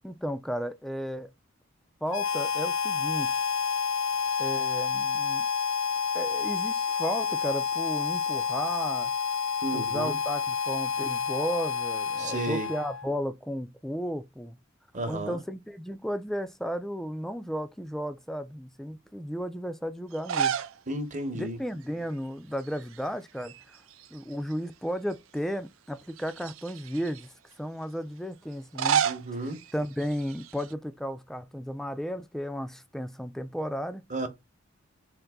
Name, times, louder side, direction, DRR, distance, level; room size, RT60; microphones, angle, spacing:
voice 1, 0.0-1.3 2.0-3.4 4.4-5.5 6.1-9.1 9.7-14.6 15.1-20.6 21.3-23.8 24.1-29.0 29.7-34.0, equal, ahead, 0.3 m, -34 dB
Harmonica, 2.1-13.1, left 6 dB, 85° left, 0.7 m, -29 dB
voice 2, 9.6-10.2 12.2-12.7 14.9-15.4 20.9-21.6 29.0-29.6 34.1-34.3, right 2 dB, 40° right, 0.9 m, -33 dB
sound 1, 20.1-20.8 21.1-21.2 22.6-23.1 23.4-24.5 25.1-25.2 26.1-27.2 28.5-30.7, right 8 dB, 80° right, 0.4 m, -31 dB
3.9 x 2.6 x 3.5 m
head